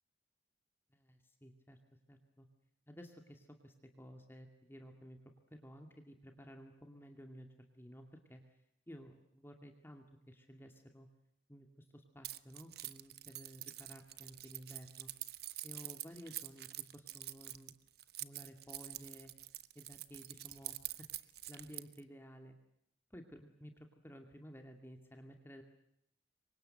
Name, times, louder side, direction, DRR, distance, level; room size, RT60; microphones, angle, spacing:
voice 1, 0.9-1.8 2.1-2.5 2.9-5.2 5.5-8.4 8.9-11.1 11.5-15.1 15.6-16.7 16.9-17.7 18.2-19.3 19.8-21.1 21.5-22.5 23.1-25.6, equal, 15° left, 4 dB, 2.2 m, -54 dB
Keys jangling, 12.2-22.0, right 15 dB, 60° right, 1.0 m, -46 dB
28.0 x 24.0 x 7.8 m, 0.76 s
head